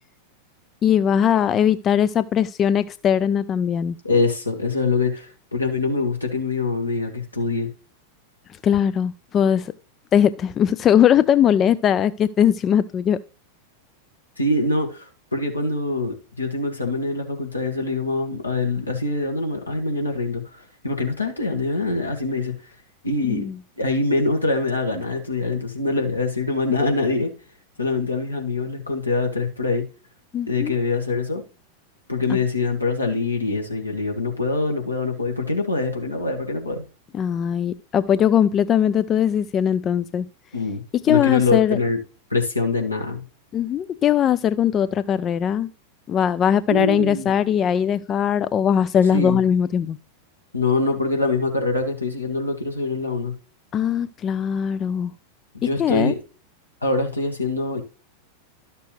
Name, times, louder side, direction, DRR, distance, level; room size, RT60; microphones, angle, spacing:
voice 1, 0.8-4.0 8.6-9.7 10.1-13.2 23.3-23.6 30.3-30.7 32.3-32.4 37.1-40.3 41.0-41.8 43.5-45.7 46.1-50.0 53.7-55.1 55.8-56.1, left 9 dB, 30° left, 0.4 m, -20 dB
voice 2, 4.0-7.7 14.4-22.5 23.0-23.5 23.8-27.3 27.8-29.8 30.5-31.4 32.1-36.8 40.5-40.8 41.1-42.0 42.3-43.2 46.7-47.3 49.1-49.4 50.5-53.3 55.6-56.2 56.8-57.8, left 3 dB, 85° left, 1.8 m, -24 dB
12.0 x 6.7 x 3.2 m
figure-of-eight pair, 90°, 0 cm